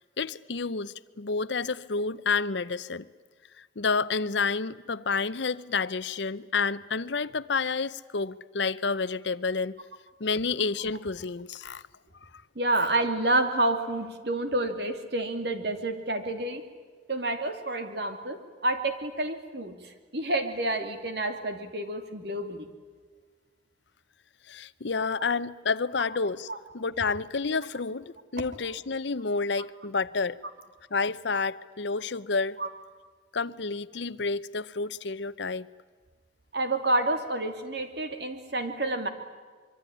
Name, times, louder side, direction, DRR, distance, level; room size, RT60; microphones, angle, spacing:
voice 1, 0.0-3.1 3.6-9.8 10.2-11.8 24.5-26.5 26.7-30.4 30.9-32.6 33.3-35.7, left 4 dB, 70° left, 0.8 m, -29 dB
voice 2, 12.5-16.6 17.1-22.7 26.5-26.6 32.6-32.7 36.5-39.1, right 2 dB, 60° right, 2.7 m, -29 dB
25.0 x 24.0 x 10.0 m
head